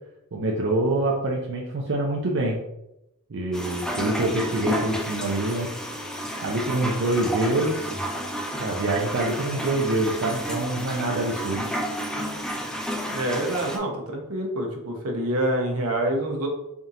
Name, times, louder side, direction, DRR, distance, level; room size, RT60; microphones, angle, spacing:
voice 1, 0.3-2.6 3.3-5.7 6.4-7.9 8.6-11.7, right 2 dB, 55° right, -1 dB, 0.5 m, -25 dB
sound 1, 3.5-13.8, equal, 5° left, 0.4 m, -31 dB
voice 2, 13.0-16.5, right 1 dB, 80° right, 1 dB, 0.9 m, -26 dB
3.5 x 2.8 x 3.7 m, 0.88 s
head